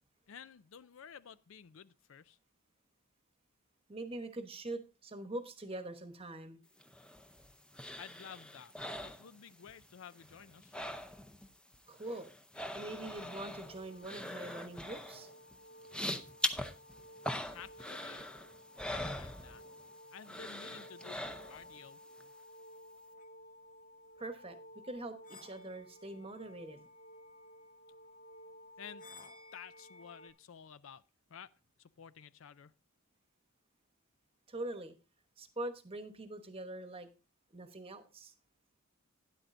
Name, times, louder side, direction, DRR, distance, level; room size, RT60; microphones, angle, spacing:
voice 1, 0.3-2.4 8.0-8.7 9.0-10.8 17.5-18.3 18.9-19.6 20.1-22.0 28.8-29.1 29.5-31.0 31.3-31.5 31.8-32.7, left 7 dB, 65° left, 0.4 m, -52 dB
voice 2, 3.9-6.6 11.9-12.3 12.7-15.3 24.2-24.6 24.8-26.9 34.5-34.9 35.4-37.1 37.5-38.3, right 2 dB, 25° right, 1.1 m, -43 dB
sound 1, 6.8-9.9 10.1-11.5 11.7-19.9 20.2-21.8 22.2-22.3, left 1 dB, 5° left, 0.6 m, -42 dB
sound 2, 13.0-30.3, left 1 dB, 40° left, 1.0 m, -55 dB
12.5 x 10.0 x 2.6 m
head